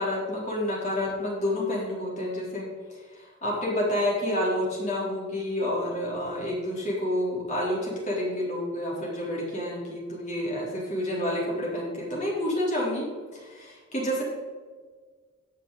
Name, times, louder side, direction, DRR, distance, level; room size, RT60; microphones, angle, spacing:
voice 1, 0.0-13.1 13.3-14.2, left 1 dB, 35° left, -4 dB, 3.8 m, -29 dB
14.5 x 7.4 x 4.1 m, 1.5 s
head